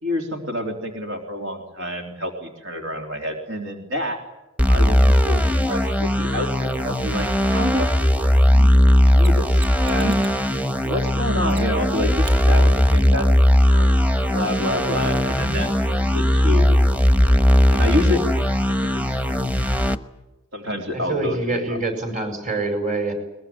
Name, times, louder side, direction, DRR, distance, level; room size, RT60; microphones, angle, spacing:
voice 1, 0.0-4.2 4.7-7.9 8.2-8.7 9.1-10.2 10.8-13.3 13.7-13.9 14.3-16.8 17.2-18.3 18.8-19.4 20.5-21.6, left 1 dB, 75° right, 3 dB, 3.5 m, -28 dB
sound 1, 4.6-20.0, equal, 5° right, 1.1 m, -18 dB
Mechanisms, 9.2-10.4 11.5-11.9 12.2-12.4 15.2-15.3, right 6 dB, 60° right, 7.1 m, -41 dB
voice 2, 20.9-23.1, right 3 dB, 40° right, 7 dB, 5.1 m, -26 dB
22.0 x 21.5 x 9.4 m, 0.99 s
head